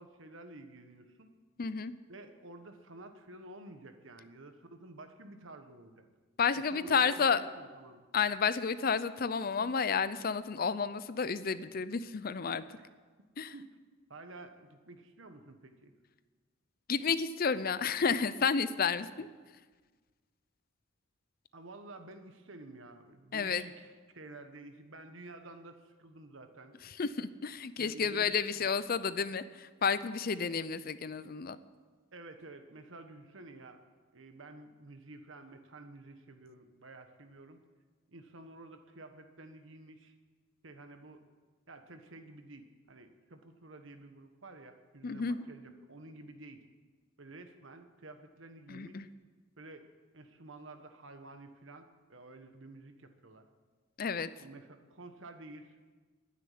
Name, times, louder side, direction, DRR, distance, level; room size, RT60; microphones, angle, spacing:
voice 1, 0.0-1.3 2.1-6.0 6.5-8.1 12.7-12.9 13.5-13.7 14.1-15.9 21.5-26.8 27.8-28.6 32.1-33.8 34.1-37.6 38.1-40.1 40.6-41.2 41.7-46.6 47.2-49.1 49.6-49.9 50.1-53.5 54.4-55.8, right 2 dB, 70° right, 7 dB, 1.3 m, -51 dB
voice 2, 1.6-1.9 6.4-7.5 8.1-12.6 13.4-13.5 16.9-19.3 23.3-23.6 26.8-31.6 45.0-45.4 48.7-49.1 54.0-54.3, left 5 dB, 45° left, 15 dB, 0.5 m, -31 dB
11.5 x 9.8 x 9.5 m, 1.4 s
head